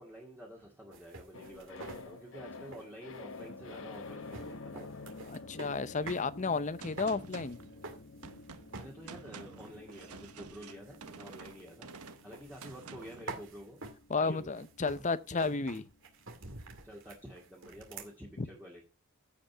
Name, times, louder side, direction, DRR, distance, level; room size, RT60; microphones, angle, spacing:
voice 1, 0.0-4.9 8.7-13.8 14.1-14.6 14.9-15.0 16.8-18.8, equal, 10° right, 2.0 m, -49 dB
sound 1, 0.9-6.3 6.6-8.5 8.7-9.2 9.6-18.1, right 3 dB, 55° right, 2.3 m, -49 dB
sound 2, 1.3-17.7 18.0-18.1, left 3 dB, 60° left, 0.9 m, -50 dB
voice 2, 5.3-7.6 14.1-15.9 18.4-18.5, left 4 dB, 35° left, 0.6 m, -32 dB
Gunshot gunfire, 6.8-13.3, right 4 dB, 90° right, 1.1 m, -50 dB
15.5 x 5.2 x 4.5 m
head